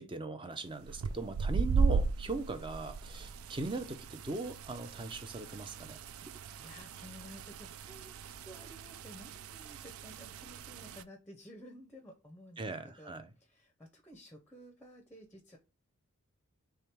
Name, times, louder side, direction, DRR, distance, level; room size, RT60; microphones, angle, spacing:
voice 1, 0.0-6.0 12.6-13.3, right 3 dB, 25° right, 0.6 m, -39 dB
sound 1, 0.8-11.0, right 4 dB, 70° right, 0.4 m, -36 dB
voice 2, 6.6-8.1 8.4-12.6 13.0-13.1 13.4-15.6, equal, 10° left, 0.7 m, -53 dB
3.5 x 3.4 x 4.4 m
head